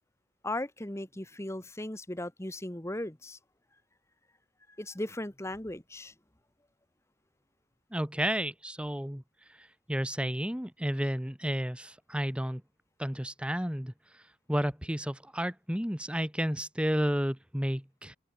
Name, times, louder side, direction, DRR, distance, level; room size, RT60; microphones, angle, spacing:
voice 1, 0.4-3.4 4.8-6.1, left 1 dB, 15° left, 1.3 m, -37 dB
voice 2, 7.9-9.2 9.6-12.6 13.0-13.9 14.5-18.2, equal, 5° right, 1.4 m, -32 dB
head